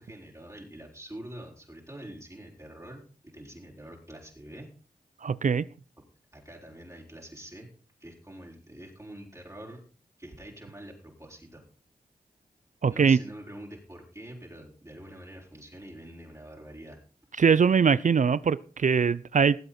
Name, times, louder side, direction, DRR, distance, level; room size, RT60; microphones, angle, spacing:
voice 1, 0.0-3.0 3.3-4.7 6.3-7.7 8.0-9.8 10.2-11.6 12.9-17.0, right 1 dB, 20° right, 5.1 m, -45 dB
voice 2, 5.2-5.7 12.8-13.2 17.4-19.6, right 6 dB, 55° right, 0.5 m, -22 dB
20.0 x 7.9 x 4.3 m
cardioid pair, 40°, 16 cm